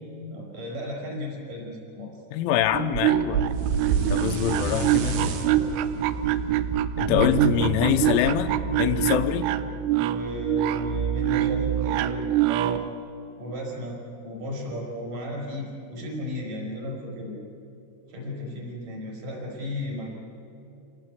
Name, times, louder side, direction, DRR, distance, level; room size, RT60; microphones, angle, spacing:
voice 1, 0.3-2.1 5.2-5.7 10.0-12.8 13.4-14.0 14.2-17.4 18.1-20.1, left 1 dB, 45° right, -1 dB, 6.5 m, -34 dB
voice 2, 2.3-3.4 4.1-5.2 7.0-8.5 8.8-9.5, left 11 dB, 85° left, 7 dB, 3.3 m, -24 dB
sound 1, 2.6-12.9, right 11 dB, 85° right, 2.3 m, -25 dB
sound 2, 3.5-7.6, right 3 dB, 65° right, 2.1 m, -33 dB
sound 3, 7.1-10.3, equal, 60° left, 0.8 m, -31 dB
28.0 x 18.5 x 8.4 m, 2.8 s
omnidirectional pair, 5.6 m